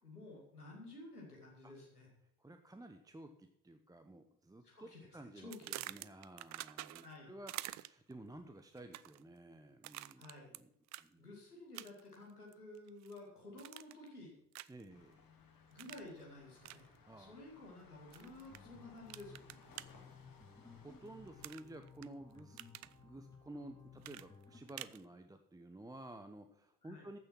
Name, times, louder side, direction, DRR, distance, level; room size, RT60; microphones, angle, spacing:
voice 1, 0.0-2.1 4.6-5.1 5.4-5.8 7.0-7.4 10.2-10.5 11.2-14.3 15.7-16.9 17.2-19.6 26.8-27.0, left 2 dB, 85° left, -2 dB, 2.5 m, -53 dB
voice 2, 2.4-10.2 10.5-10.7 11.0-11.2 14.7-15.3 17.0-17.4 19.9-20.0 20.8-22.6 23.0-27.2, right 1 dB, 10° right, 8 dB, 0.8 m, -53 dB
sound 1, 5.5-7.2 7.5-8.1 8.8-9.2 9.8-10.6 10.9-11.1 11.7-12.1 12.5-13.2 13.6-14.1 14.5-14.8 15.8-16.1 16.6-16.8 18.1-18.6 19.1-19.9 21.4-22.1 22.4-22.9 24.0-25.0, right 17 dB, 40° right, 0.4 m, -47 dB
sound 2, 14.9-21.5, left 5 dB, 50° left, 2.9 m, -63 dB
sound 3, 18.5-24.6, left 5 dB, 10° left, 2.9 m, -58 dB
14.5 x 6.6 x 6.0 m, 0.77 s
figure-of-eight pair, 45°, 44 cm